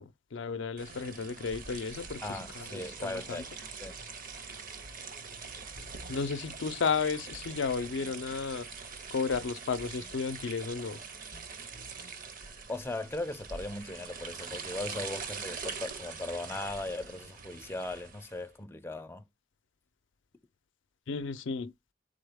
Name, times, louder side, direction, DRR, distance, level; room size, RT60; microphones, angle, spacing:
voice 1, 0.0-3.4 6.1-8.7 9.1-11.0 21.1-21.7, left 5 dB, 85° left, 0.5 m, -33 dB
sound 1, 0.8-18.5, right 5 dB, 50° right, 0.7 m, -43 dB
voice 2, 2.2-3.5 3.8-3.9 12.7-19.2, left 2 dB, 15° left, 0.4 m, -38 dB
sound 2, 5.8-6.1 7.3-8.1 9.3-10.1 11.3-12.1, equal, 75° right, 1.0 m, -54 dB
4.0 x 3.8 x 3.4 m
head